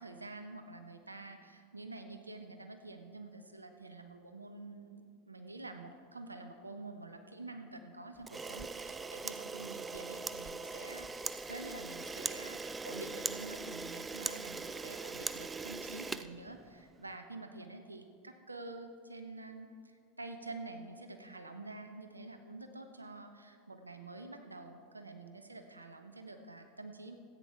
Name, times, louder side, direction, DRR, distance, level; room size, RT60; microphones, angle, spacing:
voice 1, 0.0-19.7 20.2-27.2, right 2 dB, 90° right, 7 dB, 0.9 m, -48 dB
Camera, 8.2-17.0, right 4 dB, 15° right, 0.4 m, -41 dB
14.0 x 9.1 x 4.5 m, 2.2 s
figure-of-eight pair, 85°, 0 cm